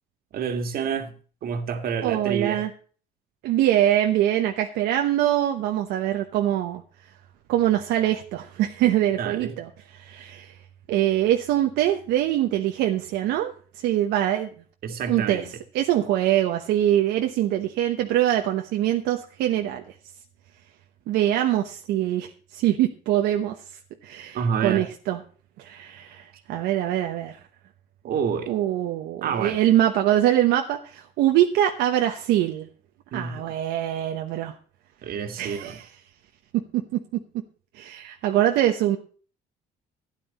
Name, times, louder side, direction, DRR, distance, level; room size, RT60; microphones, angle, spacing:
voice 1, 0.3-1.1 1.4-2.6 9.2-9.6 14.8-15.5 24.3-24.9 28.0-28.5 29.2-29.6 33.1-33.5 35.0-35.8, right 6 dB, 60° right, 1.9 m, -28 dB
voice 2, 2.0-2.7 3.4-6.8 7.5-10.6 10.9-14.5 15.1-15.4 15.7-19.9 21.1-23.6 24.0-25.2 25.6-27.4 28.5-32.7 33.1-34.5 35.4-35.9 36.5-37.0 37.7-39.0, right 12 dB, 85° right, 1.0 m, -23 dB
12.5 x 10.0 x 4.2 m
cardioid pair, 110°, 17 cm